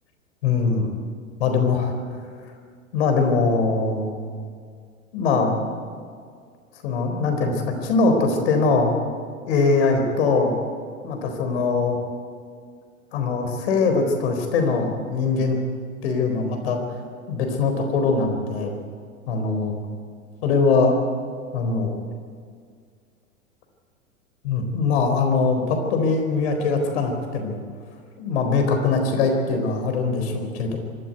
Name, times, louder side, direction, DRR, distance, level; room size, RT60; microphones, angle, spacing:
voice 1, 0.4-0.9 1.4-1.9 2.9-4.4 5.1-5.7 6.8-8.9 9.5-10.5 11.0-12.0 13.1-15.6 16.0-16.8 17.3-18.7 19.3-19.8 20.4-20.9 21.5-22.0 24.4-27.6 28.2-30.8, left 4 dB, 50° left, 4 dB, 4.3 m, -22 dB
25.0 x 12.5 x 9.5 m, 2.1 s
figure-of-eight pair, 100°, 42 cm